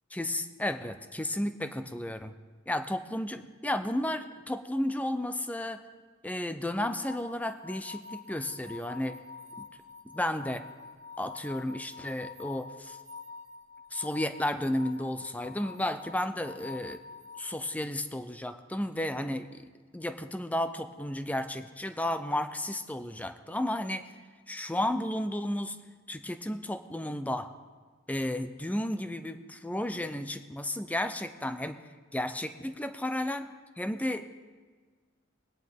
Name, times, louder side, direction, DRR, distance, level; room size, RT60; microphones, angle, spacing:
voice 1, 0.1-2.3 2.7-5.8 6.2-9.2 9.6-9.7 10.0-10.6 11.2-13.0 13.9-17.0 17.4-19.7 19.9-24.0 24.5-25.8 26.1-27.5 28.1-31.8 32.1-33.5 33.8-34.3, left 1 dB, 10° left, 9 dB, 0.6 m, -33 dB
sound 1, 6.7-17.6, left 4 dB, 85° right, 1.3 m, -47 dB
21.5 x 9.6 x 3.7 m, 1.5 s
head